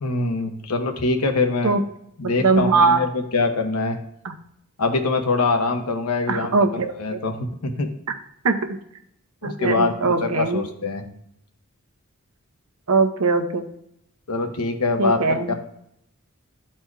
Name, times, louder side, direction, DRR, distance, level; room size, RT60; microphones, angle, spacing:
voice 1, 0.0-1.8 2.2-4.0 4.8-6.5 7.0-7.9 9.4-11.1 14.3-15.5, left 3 dB, 85° left, 5 dB, 1.0 m, -24 dB
voice 2, 2.2-3.0 4.2-4.3 6.3-7.2 8.4-8.6 9.4-10.6 12.9-13.6 15.0-15.5, right 4 dB, 75° right, 6 dB, 0.8 m, -21 dB
12.5 x 4.3 x 2.3 m, 0.76 s
head